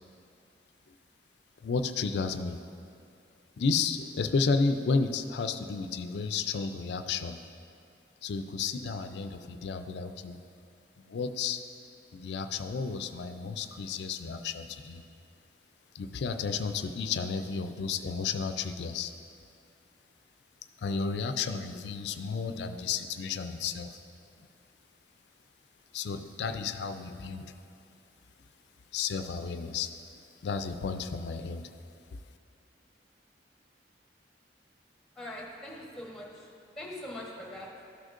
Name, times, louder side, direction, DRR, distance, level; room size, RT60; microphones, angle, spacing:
voice 1, 1.6-2.6 3.6-7.4 8.2-10.4 11.0-11.6 12.1-15.0 15.9-19.1 20.8-24.0 25.9-27.5 28.9-29.9 30.4-31.7, left 5 dB, 70° left, 9 dB, 0.4 m, -32 dB
voice 2, 35.2-36.5 36.8-37.7, left 1 dB, 5° left, -3 dB, 1.2 m, -42 dB
13.0 x 6.3 x 2.5 m, 2.5 s
head